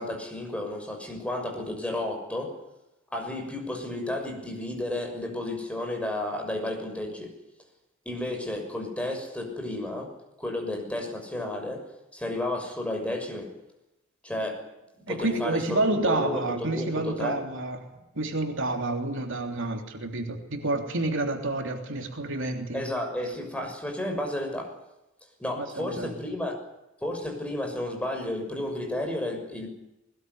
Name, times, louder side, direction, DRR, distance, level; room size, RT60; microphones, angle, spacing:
voice 1, 0.0-2.6 3.1-7.3 8.0-10.1 10.4-11.9 12.1-13.5 14.2-14.6 15.1-17.4 22.7-24.7 25.4-26.6 27.0-29.7, left 1 dB, 5° left, 3 dB, 6.4 m, -32 dB
voice 2, 15.1-17.8 18.1-22.8 25.6-26.1, right 2 dB, 65° right, 4 dB, 3.3 m, -29 dB
21.0 x 20.0 x 9.6 m, 0.93 s
head